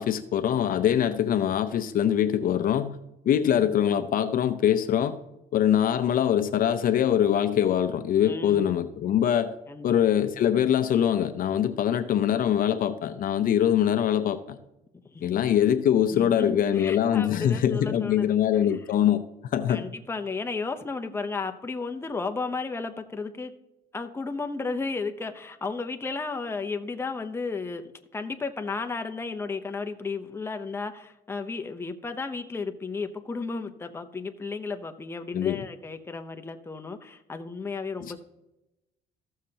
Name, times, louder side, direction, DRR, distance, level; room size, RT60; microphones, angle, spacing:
voice 1, 0.0-3.0 3.2-5.2 5.5-9.5 9.8-14.6 15.2-19.8 35.3-35.6, left 10 dB, 55° left, 0.6 m, -23 dB
voice 2, 8.2-8.7 9.7-9.9 15.0-15.4 16.1-18.4 18.7-18.8 19.7-23.5 23.9-38.2, left 4 dB, 15° left, 0.7 m, -33 dB
14.5 x 6.5 x 2.8 m
cardioid pair, 110°, 17 cm